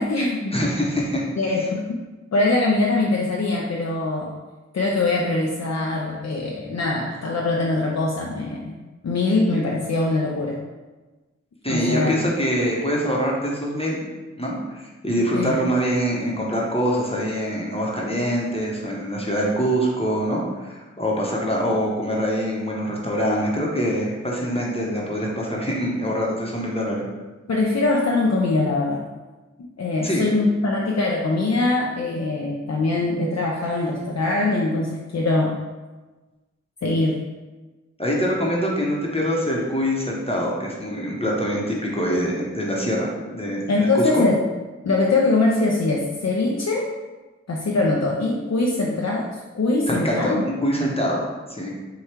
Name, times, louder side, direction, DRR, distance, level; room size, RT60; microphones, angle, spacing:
voice 1, 0.0-0.5 1.4-2.0 2.3-4.3 4.7-8.7 9.0-10.6 11.7-12.3 15.3-15.6 27.5-29.0 29.8-35.5 36.8-37.2 43.7-44.4 44.8-46.9 47.5-50.5, left 2 dB, 65° left, -1 dB, 0.5 m, -22 dB
voice 2, 0.5-1.3 11.6-14.1 14.4-27.0 30.0-30.2 38.0-44.3 49.9-51.8, equal, 20° left, -3 dB, 0.9 m, -24 dB
4.6 x 2.3 x 4.4 m, 1.2 s
wide cardioid pair, 55°, 29 cm